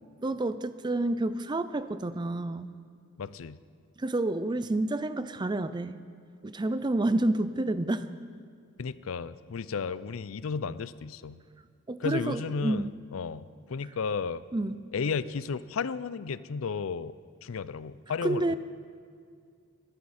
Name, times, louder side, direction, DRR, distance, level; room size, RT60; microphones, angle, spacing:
voice 1, 0.2-2.7 4.0-6.0 6.4-8.1 11.9-12.9 14.5-14.8 18.2-18.6, right 2 dB, 20° right, 13 dB, 0.4 m, -29 dB
voice 2, 3.2-3.6 8.8-11.4 12.0-14.4 14.9-17.1 17.4-18.6, left 5 dB, 75° left, 16 dB, 0.5 m, -33 dB
21.0 x 13.5 x 4.2 m, 2.2 s
head